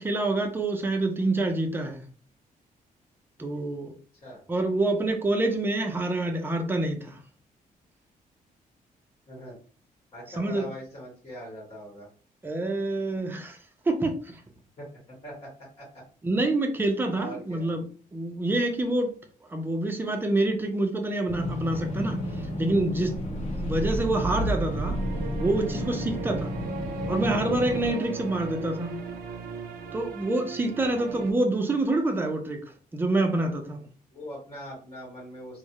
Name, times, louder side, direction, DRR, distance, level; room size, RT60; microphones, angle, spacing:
voice 1, 0.0-2.0 3.4-3.9 4.5-7.2 10.4-10.7 12.4-13.6 13.9-14.4 16.2-17.8 18.1-19.1 19.5-22.2 22.6-23.1 23.6-25.0 25.4-26.5 27.1-29.0 29.9-32.6 32.9-33.8, right 2 dB, 15° right, 0.4 m, -26 dB
voice 2, 9.3-9.6 10.1-12.1 14.8-16.0 17.2-17.7 34.1-35.6, equal, 35° left, 1.1 m, -42 dB
sound 1, 21.3-27.9, left 1 dB, 50° left, 0.7 m, -33 dB
sound 2, 22.6-31.3, right 2 dB, 85° right, 0.4 m, -35 dB
2.3 x 2.0 x 2.8 m
cardioid pair, 155°, 15 cm